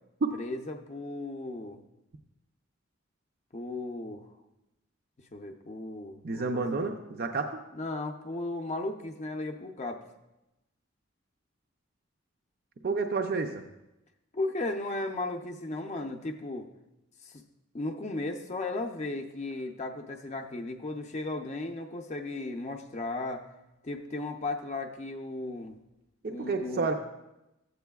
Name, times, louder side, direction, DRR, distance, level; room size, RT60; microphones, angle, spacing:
voice 1, 0.3-1.8 3.5-4.3 5.3-6.9 7.7-10.0 14.3-16.7 17.2-17.4 17.7-23.4 23.8-25.8 26.3-26.9, left 2 dB, 35° left, 4 dB, 0.5 m, -35 dB
voice 2, 6.2-7.6 12.8-13.6 26.2-26.9, right 4 dB, 50° right, 4 dB, 0.5 m, -30 dB
13.5 x 8.1 x 2.3 m, 0.94 s
head